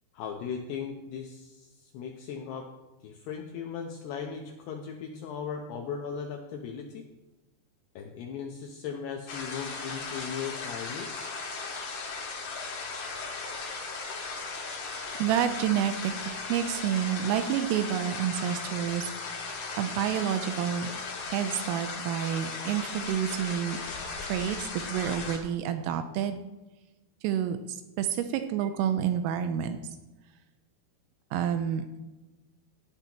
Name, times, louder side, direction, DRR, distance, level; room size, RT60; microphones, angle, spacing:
voice 1, 0.1-2.7 3.0-7.1 8.0-11.4, left 6 dB, 85° left, 2 dB, 2.3 m, -38 dB
sound 1, 9.3-25.4, left 4 dB, 55° left, 2.0 m, -37 dB
voice 2, 15.2-16.1 16.5-19.5 19.8-20.9 21.3-23.8 24.3-26.4 27.2-29.8 31.3-31.9, right 9 dB, 85° right, 8 dB, 3.2 m, -29 dB
17.5 x 10.5 x 3.0 m, 1.1 s
omnidirectional pair, 6.0 m